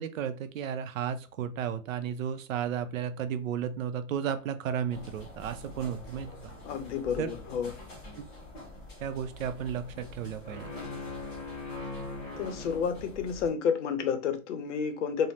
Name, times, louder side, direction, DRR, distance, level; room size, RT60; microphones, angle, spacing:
voice 1, 0.0-6.5 7.2-7.3 8.2-8.3 9.0-10.7, right 8 dB, 75° right, 0.5 m, -33 dB
sound 1, 4.9-13.5, left 2 dB, 10° left, 0.5 m, -43 dB
voice 2, 6.6-7.7 12.4-15.3, left 7 dB, 60° left, 0.6 m, -30 dB
2.6 x 2.0 x 3.0 m
hypercardioid pair, 160°, 41 cm